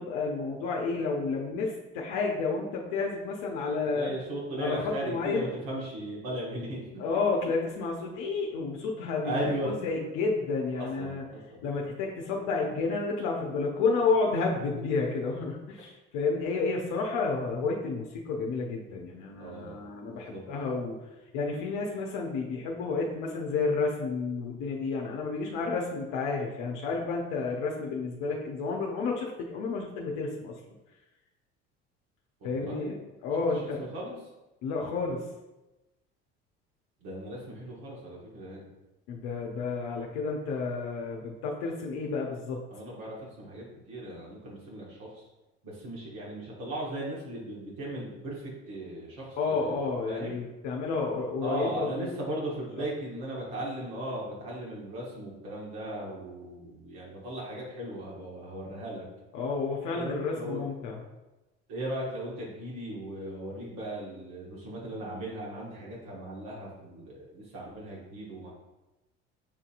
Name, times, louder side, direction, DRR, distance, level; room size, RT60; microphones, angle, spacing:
voice 1, 0.0-4.1 4.6-5.5 7.0-9.4 9.6-11.2 11.6-21.0 21.3-30.5 32.4-32.9 33.2-33.8 34.6-35.2 39.1-42.6 49.4-52.1 59.3-61.0, left 4 dB, 65° left, -1 dB, 0.7 m, -31 dB
voice 2, 3.9-6.8 9.2-9.7 10.8-11.6 19.4-20.4 32.4-32.9 33.5-34.2 37.0-38.7 42.7-45.2 45.6-50.4 51.4-59.0 59.9-60.6 61.7-68.5, right 1 dB, 65° right, -5 dB, 1.5 m, -37 dB
7.2 x 2.7 x 2.5 m, 1.0 s
hypercardioid pair, 65°, 34 cm